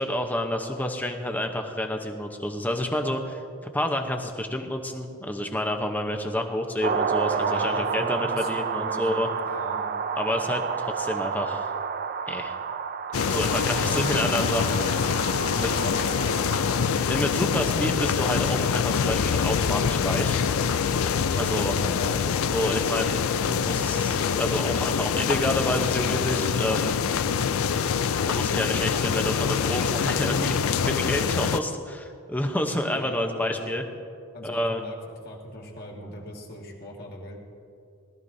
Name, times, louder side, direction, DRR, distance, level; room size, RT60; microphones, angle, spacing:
voice 1, 0.0-3.4 3.7-9.3 10.2-11.7 12.3-12.6 13.3-14.8 15.5-15.8 17.1-20.4 21.3-21.7 22.5-26.9 28.2-33.8 34.4-34.8, left 1 dB, 10° left, 4 dB, 0.8 m, -29 dB
sound 1, 6.8-17.0, right 6 dB, 45° right, 0.4 m, -30 dB
voice 2, 7.4-9.9 15.8-16.0 17.4-17.6 21.5-22.2 32.9-33.7 34.3-35.0 35.2-37.4, left 1 dB, 45° left, -1 dB, 1.8 m, -39 dB
sound 2, 13.1-31.6, left 6 dB, 75° left, 0.4 m, -25 dB
19.5 x 13.0 x 2.7 m, 2.5 s
head